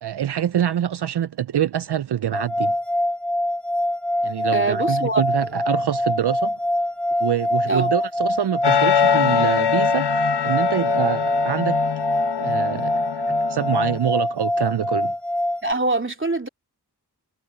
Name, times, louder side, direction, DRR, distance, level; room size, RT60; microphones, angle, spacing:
voice 1, 0.0-2.7 4.2-6.6 7.2-11.8 12.4-13.2 13.5-15.1, right 10 dB, 75° right, 0.6 m, -25 dB
sound 1, 2.3-15.7, left 1 dB, 5° left, 0.6 m, -24 dB
voice 2, 4.5-5.2 7.7-7.9 15.6-16.5, right 2 dB, 30° right, 2.6 m, -23 dB
sound 2, 8.6-14.0, left 9 dB, 80° left, 1.0 m, -23 dB
wide cardioid pair, 45°, 40 cm